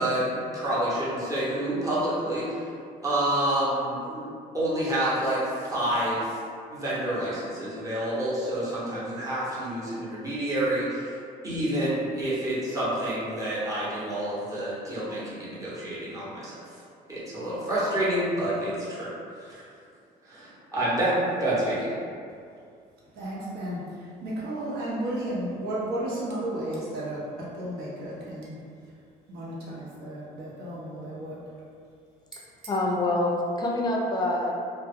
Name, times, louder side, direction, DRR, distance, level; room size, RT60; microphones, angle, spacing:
voice 1, 0.0-2.6 3.0-4.2 4.5-6.4 6.7-11.2 11.4-16.5 17.1-19.1 19.4-19.7 20.2-21.9, right 1 dB, 20° right, -9 dB, 0.9 m, -28 dB
voice 2, 23.1-28.5 29.3-31.4 32.3-32.4, right 1 dB, 75° right, -6 dB, 0.8 m, -33 dB
voice 3, 32.7-34.5, left 2 dB, 25° left, -1 dB, 0.4 m, -26 dB
2.1 x 2.0 x 3.4 m, 2.3 s
cardioid pair, 110°, 17 cm